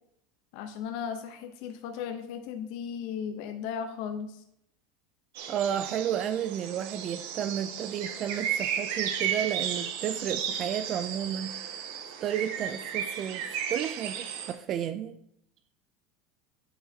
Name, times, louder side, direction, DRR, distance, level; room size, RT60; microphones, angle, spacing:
voice 1, 0.5-4.4, left 7 dB, 60° left, 0.7 m, -36 dB
sound 1, 5.3-14.5, right 8 dB, 70° right, 1.2 m, -34 dB
voice 2, 5.5-11.6 12.2-15.2, right 9 dB, 35° right, 0.3 m, -32 dB
9.5 x 7.0 x 2.8 m
supercardioid pair, 155°, 0 cm